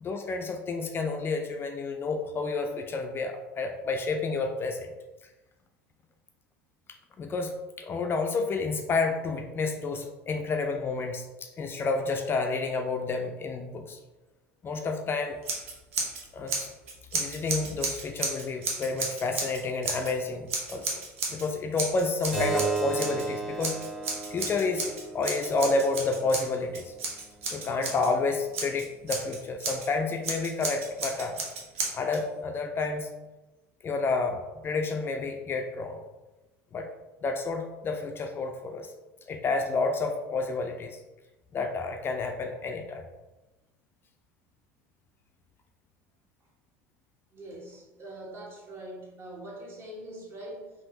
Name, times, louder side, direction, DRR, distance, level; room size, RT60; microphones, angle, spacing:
voice 1, 0.0-4.9 7.2-14.0 14.6-15.4 16.3-16.7 17.1-21.0 21.3-23.7 24.3-26.9 27.5-31.4 31.9-33.1 33.8-36.0 36.7-36.9 37.2-38.9 39.3-41.0 41.5-43.0, left 3 dB, 35° left, 4 dB, 0.3 m, -30 dB
Scissors, 15.4-16.2 16.5-20.1 20.5-21.5 21.8-23.3 23.6-28.1 28.5-29.9 30.2-32.2, right 3 dB, 85° right, 0.6 m, -33 dB
Keyboard (musical), 22.3-27.4, right 4 dB, 5° right, 1.1 m, -34 dB
voice 2, 47.3-50.7, right 1 dB, 35° right, -2 dB, 1.1 m, -43 dB
3.5 x 2.7 x 2.7 m, 1.1 s
hypercardioid pair, 85°, 7 cm